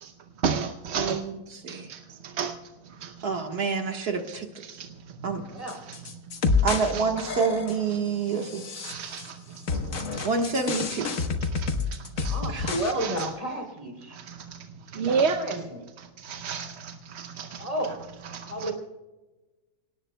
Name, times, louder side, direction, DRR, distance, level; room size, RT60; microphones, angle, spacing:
voice 1, 0.4-1.2 1.7-2.6 3.0-3.1 4.3-4.9 5.2-5.3 5.8-6.0 6.9-7.3 8.8-9.4 10.1-10.5 11.0-13.3 14.1-14.6 14.9-15.6 16.0-18.7, right 5 dB, 55° right, 7 dB, 0.8 m, -33 dB
voice 2, 0.9-2.0 3.2-4.5 5.2-5.4 6.6-8.7 10.2-11.1 12.5-12.8, right 5 dB, 75° right, 3 dB, 2.0 m, -28 dB
sound 1, 5.7-6.9 7.2-7.9 8.4-9.3 9.7-12.9 13.2-13.3, left 4 dB, 55° left, 1.5 m, -29 dB
voice 3, 12.3-14.2 14.9-15.8 17.6-18.0 18.5-18.7, right 1 dB, 20° right, 2 dB, 3.3 m, -32 dB
28.0 x 18.0 x 2.2 m, 1.2 s
omnidirectional pair, 1.7 m